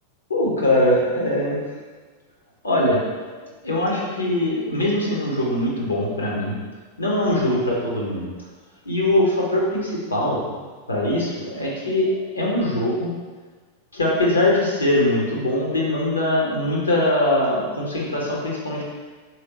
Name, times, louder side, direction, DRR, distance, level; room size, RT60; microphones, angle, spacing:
voice 1, 0.3-1.6 2.6-6.5 7.0-8.3 8.8-10.6 10.9-13.1 13.9-18.8, left 1 dB, 75° left, -4 dB, 0.8 m, -22 dB
3.2 x 2.8 x 2.9 m, 1.4 s
figure-of-eight pair, 90°, 0 cm